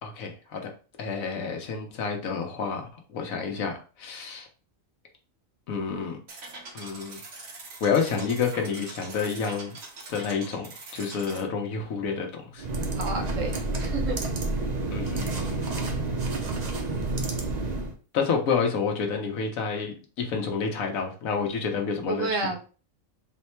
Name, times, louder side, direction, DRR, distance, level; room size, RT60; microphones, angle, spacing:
voice 1, 0.0-0.6 1.0-4.5 5.7-6.2 6.7-7.2 7.8-9.8 10.1-10.7 10.9-12.3 12.5-12.7 14.9-16.0 18.1-22.6, left 5 dB, 85° left, 3 dB, 1.3 m, -29 dB
sound 1, 6.3-11.4, right 3 dB, 85° right, 1.5 m, -43 dB
sound 2, 12.6-17.9, right 2 dB, 45° right, 0.6 m, -29 dB
voice 2, 13.0-14.2 22.1-22.6, right 3 dB, 70° right, 2 dB, 1.2 m, -30 dB
4.0 x 2.2 x 4.3 m, 0.36 s
omnidirectional pair, 1.4 m